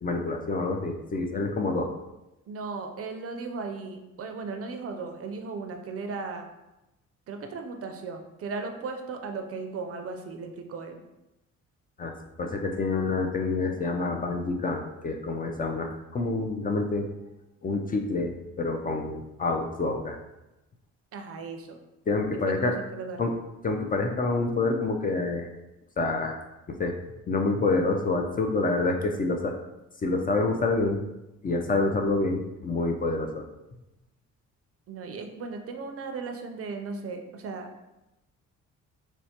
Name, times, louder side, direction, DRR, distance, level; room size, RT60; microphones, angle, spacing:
voice 1, 0.0-1.9 12.0-12.1 12.4-17.1 17.6-20.2 22.1-22.8 23.2-23.3 23.6-25.5 26.0-26.4 26.7-26.9 27.3-29.5 30.0-31.0 31.4-33.4, left 3 dB, 30° left, 3 dB, 0.4 m, -27 dB
voice 2, 2.5-6.5 7.3-11.0 21.1-21.8 22.4-23.3 34.9-37.7, right 4 dB, 50° right, 5 dB, 0.5 m, -36 dB
4.4 x 2.1 x 2.8 m, 0.94 s
cardioid pair, 90°, 30 cm